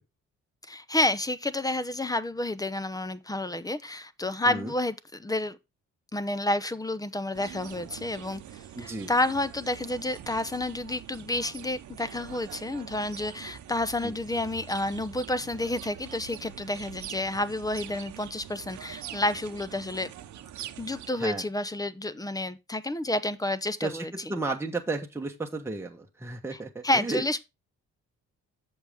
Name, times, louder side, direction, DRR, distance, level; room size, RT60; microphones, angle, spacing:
voice 1, 0.7-4.9 5.2-5.6 6.1-20.1 20.8-24.1 26.8-27.4, left 1 dB, 10° left, 0.8 m, -30 dB
sound 1, 7.3-21.1, right 11 dB, 70° right, 0.9 m, -44 dB
voice 2, 8.7-9.1 14.0-14.2 21.2-21.4 23.8-27.2, right 3 dB, 10° right, 1.2 m, -33 dB
8.0 x 6.6 x 3.5 m
cardioid pair, 90°, 30 cm